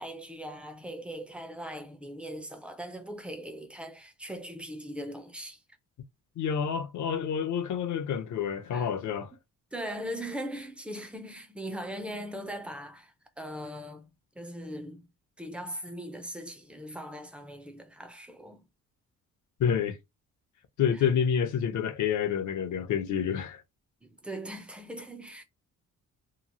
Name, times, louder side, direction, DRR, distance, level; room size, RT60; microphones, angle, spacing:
voice 1, 0.0-5.6 8.7-8.9 9.7-15.1 15.4-18.7 20.9-21.0 24.0-25.4, equal, 5° right, 0.4 m, -40 dB
voice 2, 6.4-9.3 19.6-20.0 20.8-23.6, left 7 dB, 60° left, 0.6 m, -28 dB
2.9 x 2.4 x 2.6 m
cardioid pair, 165°, 33 cm